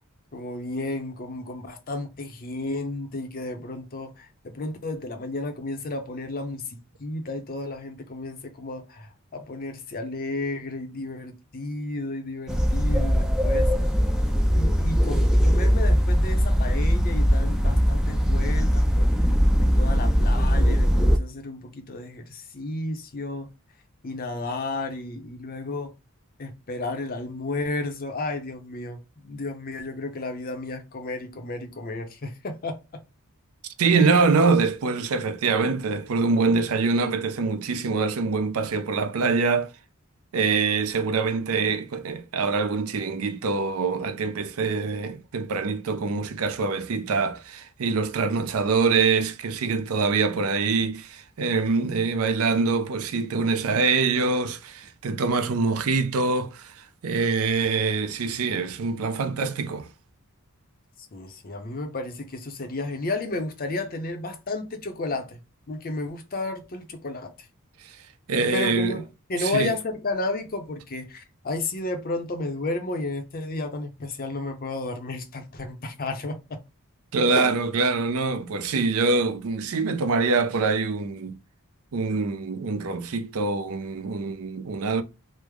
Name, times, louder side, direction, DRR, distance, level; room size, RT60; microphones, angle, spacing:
voice 1, 0.3-13.7 14.5-19.3 19.6-23.5 24.0-25.9 26.4-32.8 33.9-34.1 61.1-65.4 65.7-67.3 68.5-76.6 77.3-77.5, left 2 dB, 40° left, 0.6 m, -32 dB
sound 1, 12.5-21.2, equal, 5° right, 0.4 m, -20 dB
voice 2, 33.8-39.7 40.3-59.9 67.8-68.0 68.3-69.0 69.4-69.7 77.1-81.4 81.9-85.0, right 4 dB, 70° right, 0.5 m, -24 dB
3.2 x 2.0 x 3.3 m
head